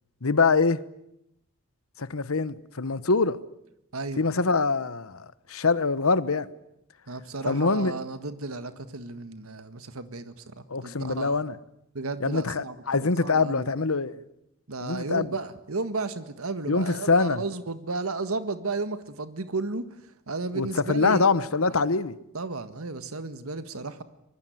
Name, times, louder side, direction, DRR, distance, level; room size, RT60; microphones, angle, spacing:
voice 1, 0.2-0.8 2.0-3.4 4.2-6.5 7.4-7.9 10.7-11.6 12.2-14.1 14.8-15.3 16.7-17.4 20.5-22.2, left 4 dB, 80° left, 1.1 m, -24 dB
voice 2, 3.9-4.2 7.1-11.4 12.0-13.7 14.7-19.8 20.3-21.3 22.3-24.0, right 3 dB, 85° right, 1.6 m, -33 dB
25.0 x 21.0 x 9.4 m
head